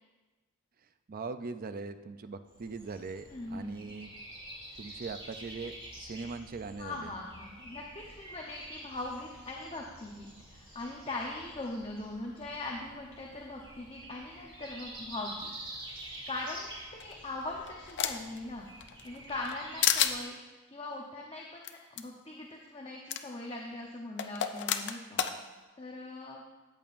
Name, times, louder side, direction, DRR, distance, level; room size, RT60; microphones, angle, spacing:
voice 1, 1.1-4.1 4.8-7.1, right 4 dB, 40° right, 10 dB, 0.5 m, -41 dB
Breathing, 2.5-20.2, right 1 dB, 25° right, 2.6 m, -48 dB
voice 2, 3.3-3.9 6.8-15.5 16.3-25.2 25.8-26.4, left 2 dB, 25° left, -1 dB, 0.9 m, -41 dB
sound 1, 17.0-18.4 18.8-19.6 19.8-20.2 21.6-21.7 22.0-22.1 23.1-23.2 24.2-25.3, left 9 dB, 55° left, 0.5 m, -30 dB
14.0 x 9.0 x 2.6 m, 1.2 s
head